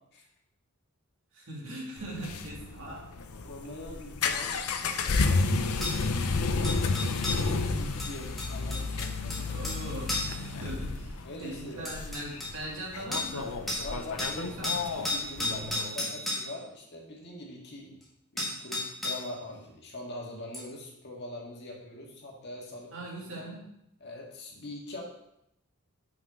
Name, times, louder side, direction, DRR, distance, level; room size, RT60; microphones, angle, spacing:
voice 1, 1.3-3.1 4.5-4.6 9.5-13.6 13.9-14.9 15.4-16.0 22.9-23.6, right 1 dB, 65° right, -3 dB, 2.3 m, -41 dB
sound 1, 2.0-15.8, left 3 dB, 85° left, 0.6 m, -31 dB
voice 2, 3.3-5.6 7.3-9.5 11.2-11.9 13.7-14.6 15.0-18.0 18.3-22.9 23.3-23.5 24.0-25.0, left 1 dB, 50° left, -2 dB, 1.8 m, -43 dB
sound 2, 5.8-6.0 6.6-7.5 8.0-9.8 10.1-10.4 11.4-11.5 11.8-12.5 13.1-13.4 13.7-13.9 14.2-16.5 18.0-18.1 18.4-19.3 20.5-20.6, left 2 dB, ahead, 1.6 m, -33 dB
5.8 x 5.6 x 4.8 m, 0.80 s
head